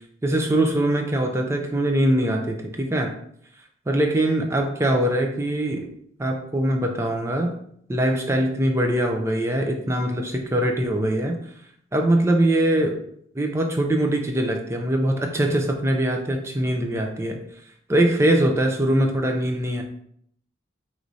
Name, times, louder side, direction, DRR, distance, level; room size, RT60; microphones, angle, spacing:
voice 1, 0.2-3.1 3.9-5.9 6.2-7.5 7.9-11.4 11.9-13.0 13.3-17.4 17.9-19.8, right 1 dB, 15° right, 3 dB, 0.4 m, -22 dB
4.8 x 3.0 x 2.6 m, 0.69 s
head